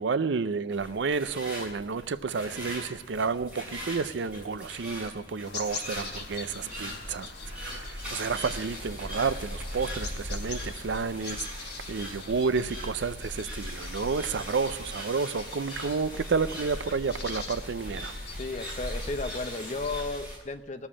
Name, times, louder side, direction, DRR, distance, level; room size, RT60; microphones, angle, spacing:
voice 1, 0.0-7.3 7.6-11.5 11.9-18.1, right 5 dB, 80° right, 0.5 m, -30 dB
sound 1, 0.7-20.4, equal, 5° right, 7.0 m, -39 dB
sound 2, 5.4-20.0, left 4 dB, 75° left, 3.9 m, -44 dB
voice 2, 18.4-20.9, left 3 dB, 40° left, 0.7 m, -34 dB
17.5 x 7.2 x 8.6 m
head